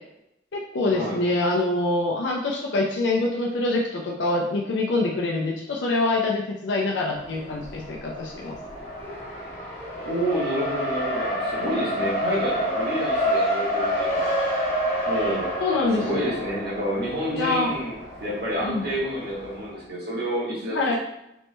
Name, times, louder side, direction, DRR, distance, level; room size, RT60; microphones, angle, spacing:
voice 1, 0.5-8.6 12.0-12.1 15.6-16.3 17.3-17.7 18.6-18.8 20.7-20.9, left 2 dB, 85° left, -1 dB, 0.5 m, -25 dB
Race car auto racing, 7.1-19.8, equal, 40° left, 1.0 m, -29 dB
voice 2, 10.0-14.4 15.1-15.5 16.0-21.0, equal, 60° right, -5 dB, 1.1 m, -29 dB
3.1 x 3.0 x 3.2 m, 0.84 s
head